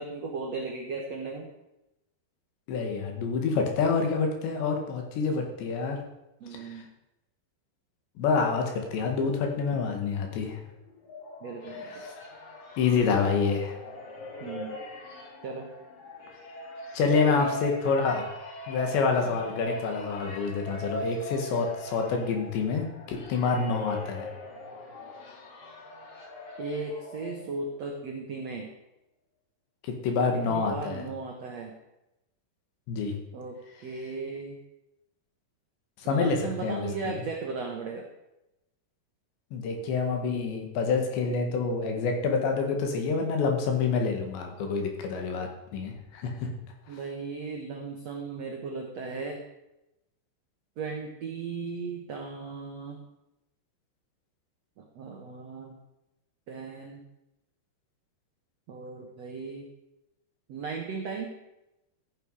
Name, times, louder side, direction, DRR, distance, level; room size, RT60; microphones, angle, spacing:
voice 1, 0.0-1.5 6.4-6.9 11.4-12.0 14.4-14.8 15.4-15.7 17.1-17.6 19.2-19.4 23.6-23.8 26.6-28.7 30.3-31.8 33.3-34.6 36.0-38.1 46.9-49.4 50.8-53.0 54.8-55.8 56.5-57.0 58.7-59.7 60.5-61.4, right 4 dB, 80° right, 2 dB, 1.5 m, -36 dB
voice 2, 2.7-6.0 6.5-6.8 8.2-10.6 12.0-12.1 12.8-13.8 16.9-18.3 18.7-24.3 30.0-31.0 32.9-33.1 36.0-37.2 39.5-46.5, left 5 dB, 75° left, 3 dB, 4.1 m, -27 dB
sound 1, 10.8-27.8, left 1 dB, 50° left, 4.5 m, -41 dB
14.5 x 9.9 x 4.9 m, 0.92 s
omnidirectional pair, 5.1 m